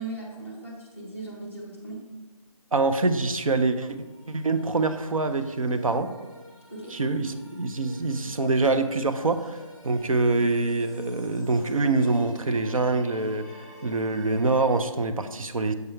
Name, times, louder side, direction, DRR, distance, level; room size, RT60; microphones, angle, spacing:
voice 1, 0.0-2.1 6.7-6.9, right 2 dB, 20° right, -3 dB, 0.9 m, -38 dB
voice 2, 2.7-4.0 4.3-6.1 6.9-9.6 9.8-15.7, right 3 dB, 70° right, 9 dB, 0.6 m, -25 dB
sound 1, 3.8-14.8, equal, ahead, 1.3 m, -47 dB
6.7 x 3.3 x 4.4 m, 1.2 s
figure-of-eight pair, 175°, 18 cm